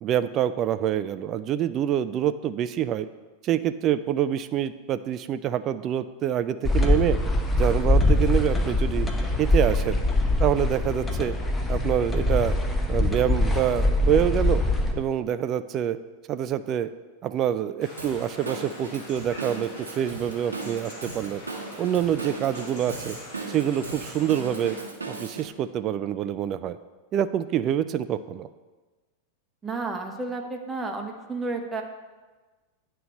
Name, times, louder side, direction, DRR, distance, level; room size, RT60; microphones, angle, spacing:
voice 1, 0.0-3.1 3.4-7.2 7.6-9.1 9.4-10.0 10.4-11.3 11.7-12.5 12.9-14.6 14.9-16.0 16.3-16.9 17.2-21.4 21.8-23.2 23.5-24.8 25.1-26.8 27.1-28.5, right 10 dB, 35° right, 13 dB, 0.3 m, -26 dB
sound 1, 6.6-14.9, left 1 dB, 10° left, 0.8 m, -23 dB
sound 2, 17.8-24.8, left 1 dB, 40° left, 1.9 m, -43 dB
Drum kit / Drum, 18.0-25.5, right 3 dB, 75° right, 0.9 m, -38 dB
voice 2, 29.6-31.8, right 3 dB, 15° right, 3 dB, 0.9 m, -31 dB
8.8 x 3.4 x 6.3 m, 1.3 s
figure-of-eight pair, 90°, 0 cm